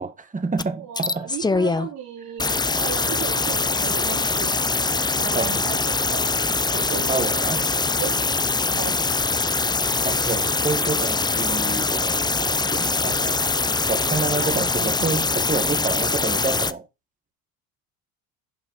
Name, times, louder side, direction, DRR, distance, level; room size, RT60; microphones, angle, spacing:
voice 1, 0.0-1.3 5.3-5.6 6.7-7.7 10.0-13.4 13.9-16.8, right 4 dB, 20° right, 2.0 m, -28 dB
sound 1, 0.6-0.7 1.0-1.9 2.4-16.7, left 3 dB, 10° left, 0.6 m, -23 dB
voice 2, 0.8-4.5 5.2-6.2 6.7-7.5 8.0-8.2 8.7-8.9 14.4-15.1, right 8 dB, 65° right, 4.6 m, -35 dB
11.0 x 5.5 x 4.3 m
supercardioid pair, 80°, 39 cm